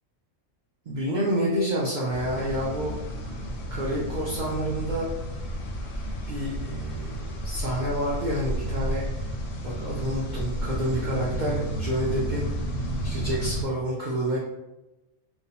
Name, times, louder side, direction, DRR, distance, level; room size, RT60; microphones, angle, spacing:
voice 1, 0.9-2.9 3.7-5.1 6.3-9.0 9.6-12.5 13.0-14.4, equal, 75° right, -5 dB, 0.4 m, -28 dB
sound 1, 2.1-13.6, right 1 dB, 70° left, 0.8 m, -32 dB
2.6 x 2.1 x 2.7 m, 1.0 s
omnidirectional pair, 1.4 m